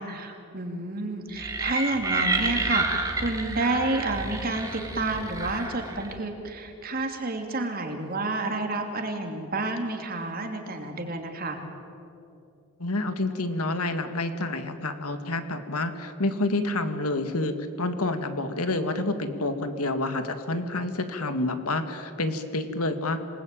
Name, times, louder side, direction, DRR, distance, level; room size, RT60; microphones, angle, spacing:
voice 1, 0.0-11.6, right 2 dB, 40° right, 3 dB, 2.8 m, -30 dB
sound 1, 1.4-6.2, right 2 dB, 15° right, 2.0 m, -30 dB
voice 2, 12.8-23.2, left 2 dB, 85° left, 8 dB, 2.1 m, -28 dB
27.0 x 20.0 x 9.1 m, 2.7 s
head